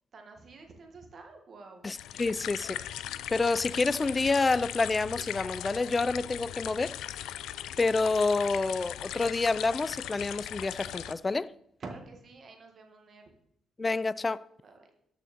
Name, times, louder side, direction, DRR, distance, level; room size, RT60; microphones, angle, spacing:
voice 1, 0.1-1.9 11.8-13.3 14.6-14.9, right 3 dB, 45° right, 1.8 m, -48 dB
voice 2, 1.8-2.8 3.3-7.0 7.8-11.5 13.8-14.4, left 3 dB, 25° left, 0.3 m, -28 dB
sound 1, 2.0-11.1, left 12 dB, 90° left, 0.4 m, -39 dB
13.0 x 6.3 x 4.3 m
cardioid pair, 120°, 0 cm